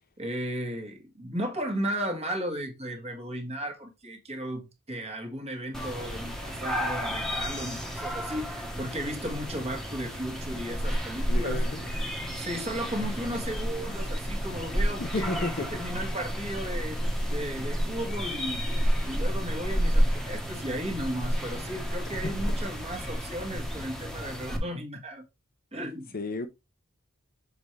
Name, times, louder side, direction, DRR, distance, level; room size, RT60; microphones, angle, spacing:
voice 1, 0.2-11.6 12.3-17.0 17.3-18.7 19.0-25.2 25.7-26.2, equal, 30° right, 1.6 m, -35 dB
sound 1, 5.7-24.6, equal, ahead, 1.3 m, -31 dB
voice 2, 11.3-11.9 15.0-15.8 26.1-26.5, left 2 dB, 45° left, 0.7 m, -32 dB
6.6 x 4.4 x 3.3 m
head